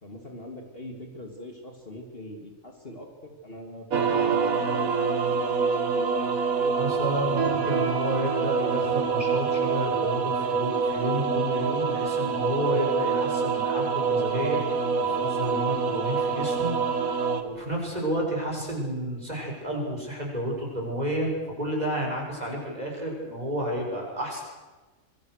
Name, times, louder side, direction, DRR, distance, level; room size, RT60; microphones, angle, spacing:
voice 1, 0.0-4.6 5.5-6.8, left 1 dB, 45° left, 3 dB, 2.9 m, -42 dB
sound 1, 3.9-17.4, right 5 dB, 90° right, 2.1 m, -26 dB
voice 2, 6.8-14.6 15.0-21.3 21.6-24.4, right 1 dB, 30° right, -1 dB, 7.1 m, -31 dB
26.0 x 24.0 x 6.6 m, 1.2 s
omnidirectional pair, 1.4 m